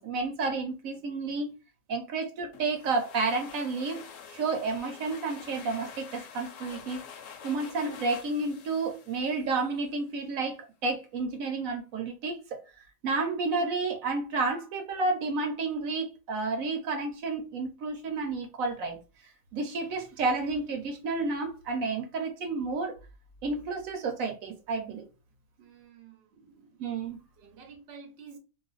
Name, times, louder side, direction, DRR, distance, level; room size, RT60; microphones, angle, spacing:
voice 1, 0.0-1.5 1.9-4.0 4.3-7.0 7.4-12.6 13.0-19.0 19.5-22.9 23.4-25.1 26.8-27.2, right 3 dB, 75° right, 1.1 m, -31 dB
sound 1, 2.5-10.0, left 7 dB, 70° left, 0.9 m, -47 dB
voice 2, 25.6-26.8 27.4-28.4, right 5 dB, 55° right, 0.9 m, -50 dB
2.5 x 2.4 x 3.9 m
omnidirectional pair, 1.5 m